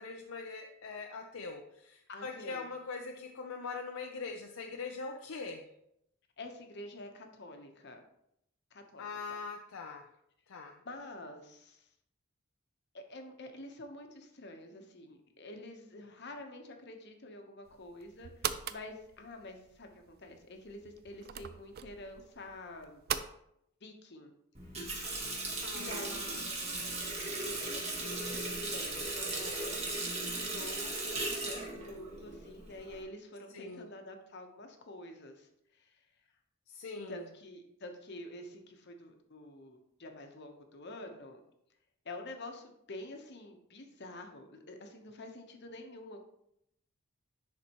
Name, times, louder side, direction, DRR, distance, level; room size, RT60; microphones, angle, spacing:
voice 1, 0.0-5.7 9.0-10.1 10.5-10.8 25.6-27.4 33.5-33.9 36.7-37.2, left 4 dB, 75° left, 3 dB, 0.5 m, -43 dB
voice 2, 2.1-2.7 6.4-8.0 8.7-9.1 10.8-11.9 12.9-23.0 23.8-24.3 25.7-26.5 27.4-36.0 37.1-41.4 42.0-46.2, left 1 dB, 55° left, 5 dB, 1.0 m, -48 dB
sound 1, 17.7-23.3, right 9 dB, 45° right, 0.4 m, -41 dB
Water tap faucet, 24.5-33.0, right 2 dB, 30° right, 1.6 m, -37 dB
10.5 x 4.2 x 3.0 m, 0.77 s
head